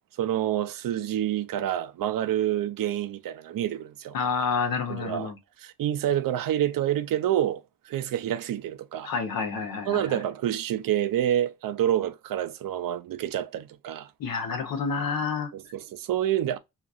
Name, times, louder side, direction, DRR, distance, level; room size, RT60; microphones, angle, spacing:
voice 1, 0.2-4.1 4.9-5.3 5.6-9.1 9.9-14.1 15.5-16.6, right 11 dB, 75° right, 0.5 m, -28 dB
voice 2, 4.1-5.4 9.0-10.2 14.2-15.5, left 5 dB, 90° left, 0.8 m, -29 dB
2.9 x 2.4 x 2.4 m
cardioid pair, 100°, 34 cm